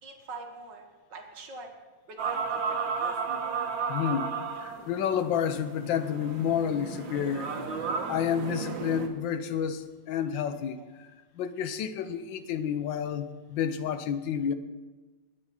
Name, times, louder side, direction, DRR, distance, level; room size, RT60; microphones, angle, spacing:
voice 1, 0.0-1.7 2.1-2.8 10.8-10.9, right 3 dB, 70° right, 2.1 m, -44 dB
sound 1, 2.2-9.1, right 5 dB, 90° right, 1.8 m, -33 dB
voice 2, 3.9-4.3 4.6-7.5 8.1-10.8 11.4-14.5, left 8 dB, 85° left, 1.5 m, -30 dB
19.5 x 8.5 x 4.3 m
omnidirectional pair, 2.0 m